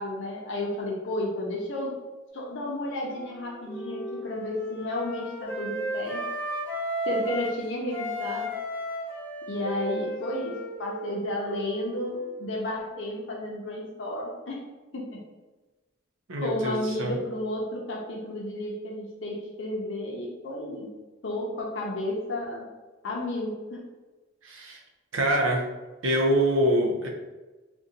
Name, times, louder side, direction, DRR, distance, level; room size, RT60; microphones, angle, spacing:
voice 1, 0.0-2.0 2.3-6.2 7.0-8.5 9.5-14.6 14.9-15.2 16.4-20.9 21.2-22.7 23.0-23.8, left 1 dB, 65° left, -2 dB, 0.6 m, -32 dB
Wind instrument woodwind instrument, 3.1-7.6 7.9-12.4, equal, 10° left, 0.5 m, -34 dB
voice 2, 16.3-17.2 24.4-24.8 25.1-25.6 26.0-27.1, right 1 dB, 90° right, 1 dB, 0.6 m, -24 dB
2.6 x 2.2 x 3.7 m, 1.2 s
head